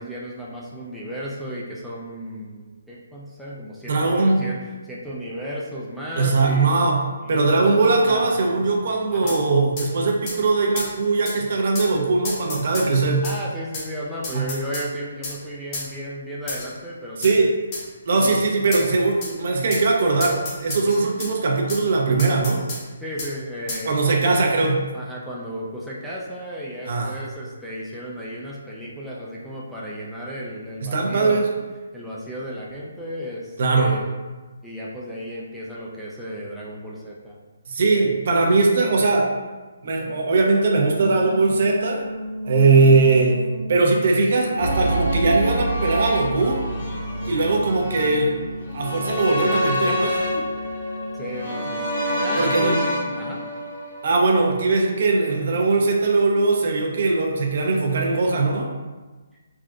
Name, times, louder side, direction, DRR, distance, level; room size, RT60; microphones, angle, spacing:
voice 1, 0.0-6.7 7.2-8.7 9.1-9.4 10.0-10.1 13.2-17.5 18.2-18.4 20.9-21.1 23.0-24.3 24.9-31.4 31.9-34.1 34.6-37.4 37.9-38.1 39.8-40.1 51.1-52.8 53.1-53.4, equal, ahead, -8 dB, 0.4 m, -34 dB
voice 2, 3.9-4.4 6.2-7.0 7.3-13.2 14.3-14.5 17.2-17.5 18.1-22.6 23.9-24.8 26.9-27.1 30.8-31.5 33.6-33.9 37.7-39.3 39.8-42.0 42.4-46.7 47.2-48.3 48.7-50.4 52.4-52.8 54.0-58.7, right 3 dB, 55° right, 0 dB, 0.6 m, -20 dB
sound 1, 9.3-9.4 9.8-9.9 10.3-10.4 10.8-10.9 11.2-11.4 11.7-11.9 12.2-13.4 13.7-13.9 14.2-14.9 15.2-15.4 15.7-15.9 16.5-16.7 17.2-17.4 17.7-17.8 18.2-18.3 18.7-18.9 19.2-19.3 19.7-19.9 20.2-21.3 21.7-21.8 22.2-22.8 23.2-23.3 23.7-23.8, left 2 dB, 30° left, 0.7 m, -32 dB
sound 2, 41.0-53.4, equal, 70° left, 1.0 m, -35 dB
sound 3, 44.6-54.7 55.0-55.1, equal, 45° left, 1.1 m, -27 dB
3.5 x 2.5 x 2.3 m, 1.3 s
hypercardioid pair, 155°, 0 cm